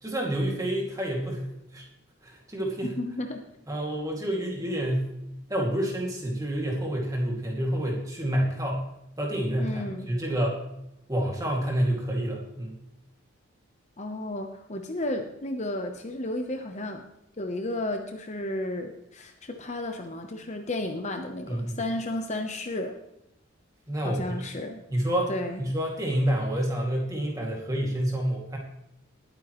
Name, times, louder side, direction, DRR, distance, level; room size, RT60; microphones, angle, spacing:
voice 1, 0.0-1.5 1.7-1.8 2.2-2.9 3.7-5.1 5.5-8.8 9.2-10.6 11.1-12.8 21.5-21.8 23.9-24.4 24.9-25.3 25.6-28.6, right 1 dB, 15° right, -1 dB, 2.3 m, -28 dB
voice 2, 2.8-3.4 9.6-10.1 14.0-17.0 17.4-23.0 24.0-24.8 25.3-25.6, left 1 dB, 35° left, 5 dB, 0.9 m, -33 dB
19.5 x 9.0 x 3.1 m, 0.85 s
head